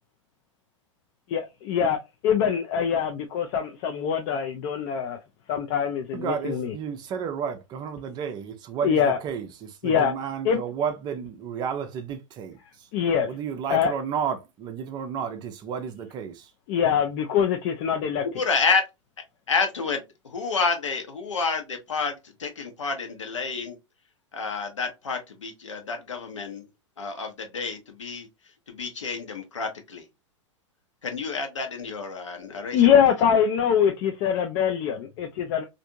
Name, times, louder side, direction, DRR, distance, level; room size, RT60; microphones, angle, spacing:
voice 1, 1.3-2.0 2.2-5.2 5.5-6.8 8.8-9.2 9.8-10.1 10.4-10.6 12.9-13.3 13.7-14.0 16.7-18.2 32.7-35.6, left 8 dB, 35° left, 0.4 m, -23 dB
voice 2, 6.1-9.0 9.2-12.6 13.3-16.4, right 7 dB, 25° right, 0.5 m, -32 dB
voice 3, 18.3-18.8 19.5-23.8 24.3-26.6 27.0-28.3 28.7-30.0 31.0-32.8, left 4 dB, 70° left, 0.9 m, -29 dB
3.3 x 2.6 x 2.6 m
figure-of-eight pair, 95°, 16 cm